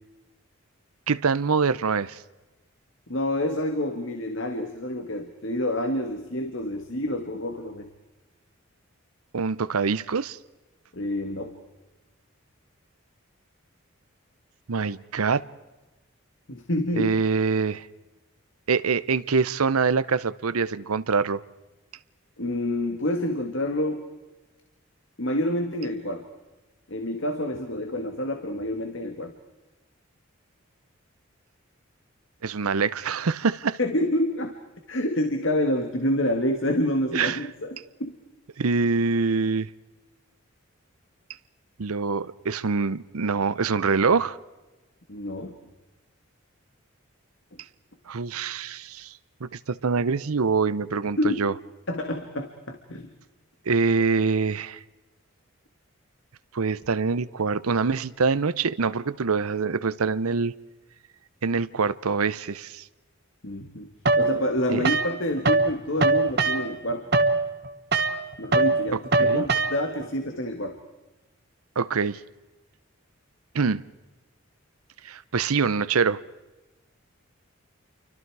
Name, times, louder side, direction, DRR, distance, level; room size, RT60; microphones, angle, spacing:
voice 1, 1.1-2.2 9.3-10.4 14.7-15.4 17.0-17.9 18.7-21.4 32.4-33.8 37.1-37.5 38.6-39.7 41.8-44.4 48.1-49.1 49.4-51.5 53.7-54.8 56.5-60.5 61.4-62.8 64.7-64.9 69.2-69.4 71.8-72.2 73.5-73.8 75.0-76.2, right 4 dB, 85° right, 0.7 m, -25 dB
voice 2, 3.1-7.9 10.9-11.5 16.5-17.2 22.4-24.0 25.2-26.3 26.9-29.3 33.8-34.6 34.9-38.2 45.1-45.5 51.2-51.4 51.9-53.1 63.4-63.9 64.1-67.1 68.4-70.8, left 1 dB, 60° left, 1.8 m, -28 dB
sound 1, 64.1-65.7 66.0-70.1, right 3 dB, 50° right, 1.4 m, -23 dB
29.5 x 24.5 x 4.8 m
head